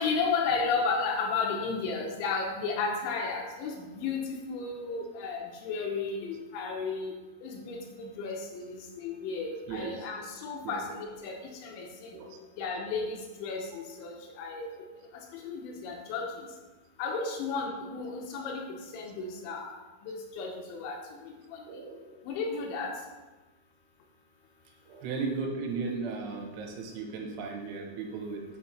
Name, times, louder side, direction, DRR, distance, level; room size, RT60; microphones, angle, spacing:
voice 1, 0.0-4.2 4.5-7.1 7.4-11.4 11.6-11.9 12.6-14.7 15.4-16.3 17.0-18.6 18.9-19.8 20.0-21.0 21.5-21.6 22.3-22.9, left 4 dB, 85° left, 1 dB, 3.0 m, -33 dB
voice 2, 9.7-10.1 10.6-10.8 12.1-12.4 21.7-22.1 24.9-28.4, right 4 dB, 85° right, 2 dB, 3.3 m, -36 dB
9.2 x 4.1 x 3.1 m, 1.2 s
omnidirectional pair, 5.4 m